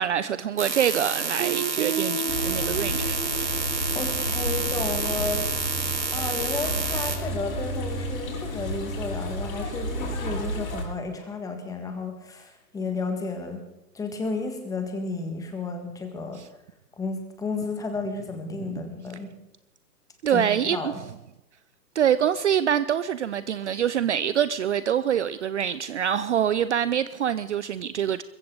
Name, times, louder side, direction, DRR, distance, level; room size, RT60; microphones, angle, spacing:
voice 1, 0.0-3.5 16.4-16.5 18.7-18.8 20.2-20.9 21.9-28.2, right 9 dB, 45° right, 0.6 m, -25 dB
sound 1, 0.6-7.2, right 5 dB, 90° right, 3.1 m, -29 dB
Guitar, 1.4-6.1, right 6 dB, 25° right, 1.3 m, -34 dB
sound 2, 2.3-10.8, equal, 55° left, 6.5 m, -31 dB
voice 2, 3.9-5.7 6.1-13.7 13.9-16.4 17.0-19.3 20.3-20.4 20.7-21.0, left 3 dB, 5° left, 1.7 m, -32 dB
22.0 x 15.0 x 3.9 m
hypercardioid pair, 145°, 49 cm